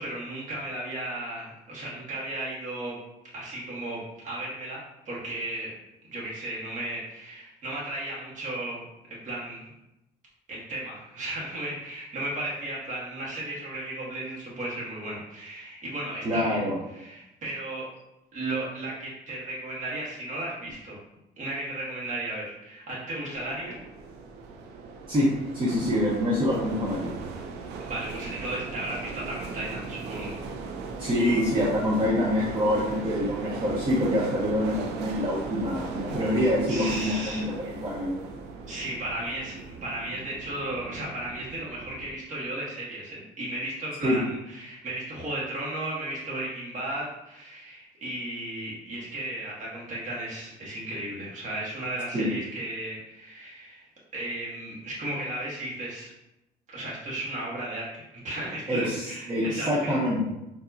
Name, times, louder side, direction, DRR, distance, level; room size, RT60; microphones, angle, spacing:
voice 1, 0.0-3.0 3.3-5.7 6.1-8.8 9.1-9.7 10.5-16.6 16.9-17.9 18.3-21.0 21.4-23.8 27.8-30.4 36.7-37.4 38.7-53.8 54.1-56.1 56.7-60.0, right 1 dB, 45° right, -5 dB, 1.4 m, -35 dB
voice 2, 16.2-16.7 25.1-25.3 25.5-27.2 31.0-38.2 44.0-44.2 52.1-52.3 58.7-60.2, left 1 dB, 30° right, -5 dB, 0.8 m, -26 dB
sound 1, 23.3-42.1, right 4 dB, 80° right, 0.5 m, -38 dB
4.5 x 2.7 x 2.6 m, 0.91 s
cardioid pair, 110°, 17 cm